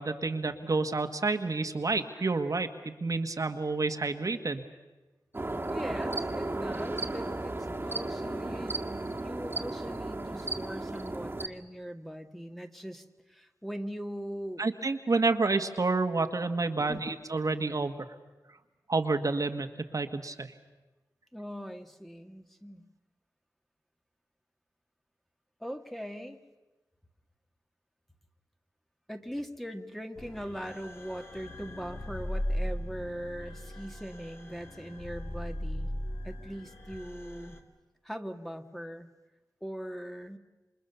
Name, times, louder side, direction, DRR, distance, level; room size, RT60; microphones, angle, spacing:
voice 1, 0.0-4.6 14.6-17.9 18.9-19.7 19.9-20.5, right 3 dB, 50° right, 7 dB, 1.6 m, -29 dB
sound 1, 5.3-11.5, right 2 dB, 30° right, 1.9 m, -34 dB
voice 2, 5.6-8.8 9.2-14.6 16.9-17.1 21.3-22.8 25.6-26.4 29.1-35.9 36.2-37.6 38.0-39.1 39.6-40.4, equal, ahead, 5 dB, 1.8 m, -40 dB
sound 2, 30.2-37.6, equal, 35° left, 3.0 m, -38 dB
28.5 x 25.5 x 6.9 m, 1.1 s
wide cardioid pair, 80°, 7 cm